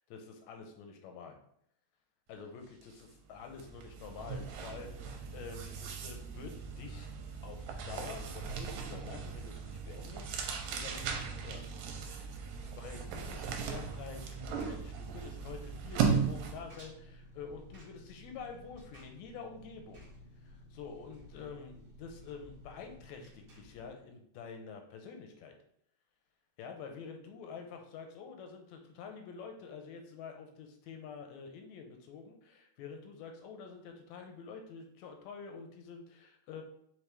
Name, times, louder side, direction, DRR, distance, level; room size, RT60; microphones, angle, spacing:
voice 1, 0.1-1.4 2.3-7.1 7.4-10.3 10.7-11.7 12.2-12.4 12.8-20.0 20.4-25.5 26.6-36.6, left 5 dB, 80° left, 4 dB, 1.7 m, -48 dB
sound 1, 2.8-3.0 3.3-16.7, right 6 dB, 80° right, 2.0 m, -37 dB
Engine, 12.3-23.9, left 1 dB, 65° right, 1.1 m, -55 dB
5.0 x 3.0 x 3.2 m, 0.70 s
omnidirectional pair, 3.6 m